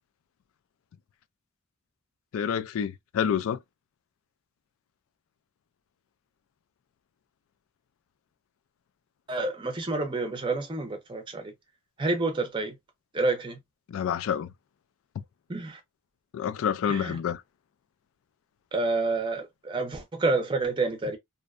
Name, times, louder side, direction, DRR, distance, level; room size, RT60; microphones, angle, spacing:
voice 1, 2.3-3.6 13.9-14.5 16.3-17.4, left 8 dB, 80° left, 0.3 m, -28 dB
voice 2, 9.3-11.5 12.0-12.7 13.1-13.6 15.5-15.8 16.9-17.1 18.7-21.2, right 3 dB, 25° right, 0.5 m, -28 dB
2.6 x 2.1 x 2.3 m
head